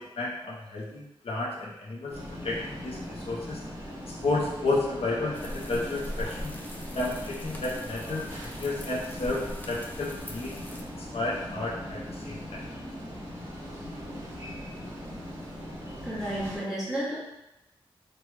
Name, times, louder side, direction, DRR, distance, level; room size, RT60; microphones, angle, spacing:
voice 1, 0.0-3.6 4.2-6.5 6.9-9.4 9.7-10.8 11.1-12.6, left 2 dB, 75° left, -3 dB, 0.6 m, -32 dB
sound 1, 2.1-16.6, equal, 30° right, 1.2 m, -40 dB
sound 2, 5.3-10.8, equal, 15° left, 0.3 m, -41 dB
voice 2, 16.0-17.2, right 1 dB, 5° right, -9 dB, 1.1 m, -31 dB
3.1 x 2.1 x 3.2 m, 0.91 s
wide cardioid pair, 160°, 10 cm